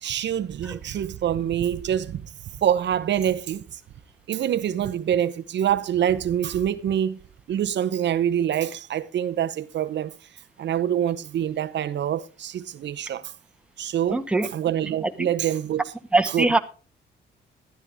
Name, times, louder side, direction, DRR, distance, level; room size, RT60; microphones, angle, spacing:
voice 1, 0.0-2.2 2.6-3.6 4.3-7.2 7.5-10.1 10.6-13.3 13.8-14.2 14.5-15.8 16.3-16.4, right 10 dB, 65° right, 0.9 m, -25 dB
voice 2, 14.1-14.5 15.0-15.3 16.1-16.6, right 2 dB, 5° right, 1.6 m, -22 dB
13.0 x 12.5 x 3.6 m
cardioid pair, 90°, 20 cm